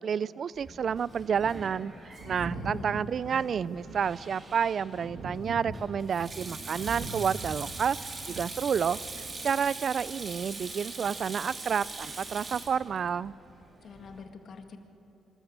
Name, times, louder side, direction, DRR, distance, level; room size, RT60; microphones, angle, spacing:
voice 1, 0.0-1.9 2.3-8.0 8.3-9.0 9.4-13.3, right 7 dB, 55° right, 20 dB, 0.4 m, -30 dB
Sink (filling or washing), 0.6-14.2, right 3 dB, 35° right, 2.8 m, -43 dB
Thunder, 2.2-9.5 10.7-10.8, right 2 dB, 75° right, 1.9 m, -42 dB
voice 2, 2.3-3.0 13.8-14.8, left 5 dB, 55° left, 5 dB, 1.9 m, -47 dB
25.0 x 13.5 x 7.9 m, 2.7 s
cardioid pair, 90°, 0 cm